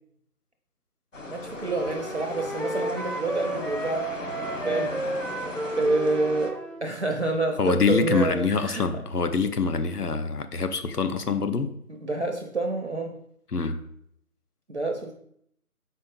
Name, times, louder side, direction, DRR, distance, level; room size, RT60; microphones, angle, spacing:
sound 1, 1.1-6.5, left 2 dB, 55° left, 1.0 m, -37 dB
voice 1, 1.3-4.1 4.6-5.0 5.6-9.0 11.9-13.2 14.7-15.1, right 2 dB, 50° right, 2 dB, 0.6 m, -28 dB
Wind instrument woodwind instrument, 1.6-6.9, right 1 dB, 5° left, 0.3 m, -33 dB
voice 2, 7.6-11.7 13.5-13.8, left 4 dB, 90° left, 9 dB, 0.8 m, -25 dB
4.4 x 4.1 x 5.3 m, 0.71 s
figure-of-eight pair, 165°, 45 cm